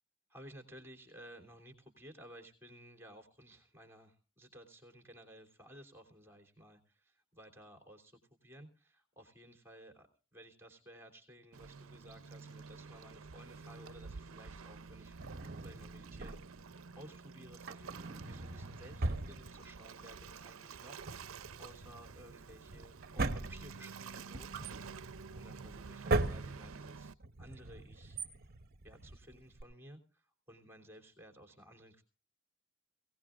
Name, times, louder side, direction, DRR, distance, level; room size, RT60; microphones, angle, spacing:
voice 1, 0.3-15.2 15.6-27.1 27.4-28.2 28.8-32.0, equal, 10° right, 3 dB, 3.1 m, -56 dB
Waves surf, 11.5-27.1, right 5 dB, 75° right, 0.6 m, -50 dB
Drawer open or close, 15.2-16.7 17.5-20.0 20.3-20.4 20.9-29.6, right 2 dB, 50° right, 1.0 m, -40 dB
22.5 x 17.5 x 2.5 m, 0.35 s
head